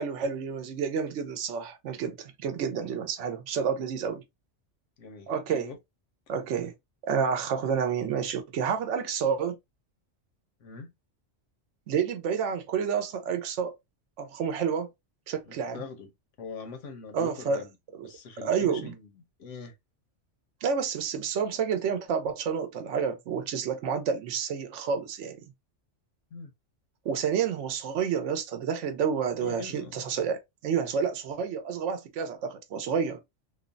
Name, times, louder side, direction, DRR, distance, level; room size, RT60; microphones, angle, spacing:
voice 1, 0.0-4.2 5.3-5.7 6.3-6.7 7.0-9.6 11.9-13.7 14.2-14.9 15.3-15.8 17.1-17.6 18.0-18.1 18.4-18.9 20.6-25.4 27.0-33.2, right 6 dB, 85° right, 0.9 m, -29 dB
voice 2, 5.0-5.8 10.6-10.9 15.4-16.1 16.4-17.7 18.0-19.1 19.4-19.7 26.3-26.5 29.4-30.1, left 4 dB, 80° left, 1.1 m, -43 dB
3.1 x 2.0 x 2.5 m
omnidirectional pair, 1.2 m